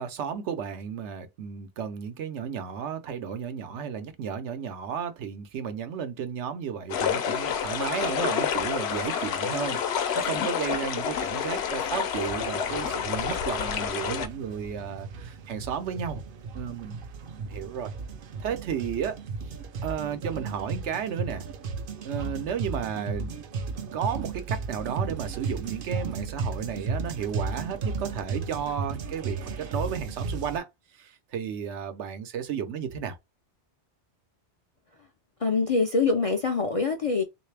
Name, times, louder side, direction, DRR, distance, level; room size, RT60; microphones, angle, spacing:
voice 1, 0.0-16.2 16.5-17.0 17.3-17.9 18.4-19.6 19.8-21.4 22.0-23.3 23.7-33.2, right 7 dB, 85° right, 1.0 m, -33 dB
sound 1, 6.9-14.3, left 8 dB, 75° left, 0.8 m, -28 dB
sound 2, 12.2-30.6, right 4 dB, 60° right, 0.7 m, -35 dB
voice 2, 35.4-37.2, left 4 dB, 50° left, 0.4 m, -24 dB
3.2 x 2.6 x 3.3 m
omnidirectional pair, 1.1 m